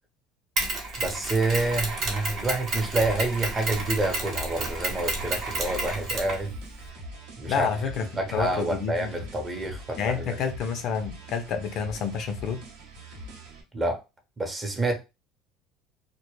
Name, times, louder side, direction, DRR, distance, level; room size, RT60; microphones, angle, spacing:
Mechanisms, 0.6-6.9, right 2 dB, 50° right, 0.9 m, -31 dB
voice 1, 1.0-6.5 7.4-7.7 8.1-10.4 13.7-14.0 14.4-15.0, right 2 dB, 20° right, 0.6 m, -28 dB
sound 1, 2.9-13.6, right 1 dB, 85° right, 0.7 m, -43 dB
voice 2, 7.5-9.1 10.0-12.6, left 6 dB, 55° left, 0.4 m, -29 dB
2.1 x 2.0 x 3.0 m
cardioid pair, 125°, 0 cm